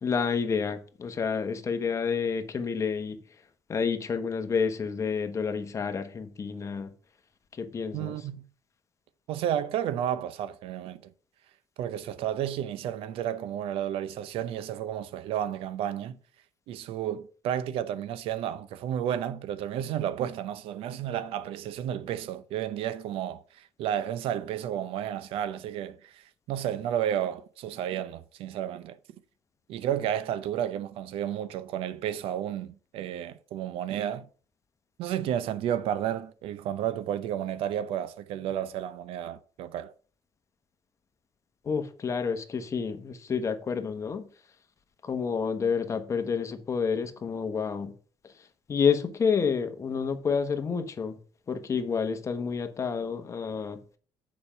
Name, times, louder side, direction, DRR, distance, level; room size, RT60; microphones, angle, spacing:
voice 1, 0.0-3.2 3.7-6.9 7.6-8.2 41.6-44.2 45.0-47.9 48.7-51.2 51.5-53.8, left 6 dB, 30° left, 1.1 m, -29 dB
voice 2, 7.9-8.5 9.3-11.1 11.8-16.2 16.7-29.0 29.7-34.3 35.0-39.9, right 10 dB, 80° right, 0.6 m, -32 dB
6.9 x 5.2 x 5.6 m
cardioid pair, 130°, 9 cm